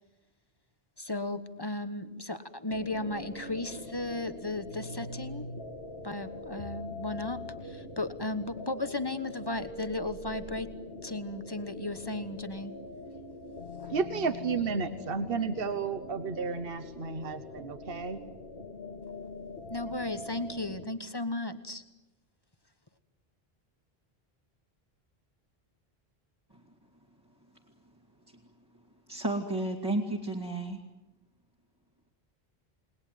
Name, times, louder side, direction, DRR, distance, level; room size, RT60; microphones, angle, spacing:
voice 1, 1.0-5.5 6.0-10.7 11.0-12.7 13.8-13.9 19.7-21.8, left 2 dB, 25° left, 10 dB, 1.3 m, -35 dB
sound 1, 2.7-20.8, left 2 dB, 70° left, 2.1 m, -43 dB
voice 2, 13.9-18.2, right 5 dB, 65° right, 10 dB, 1.4 m, -32 dB
voice 3, 29.1-30.8, right 2 dB, 20° right, -1 dB, 2.5 m, -32 dB
29.5 x 20.5 x 9.4 m, 1.0 s
omnidirectional pair, 1.0 m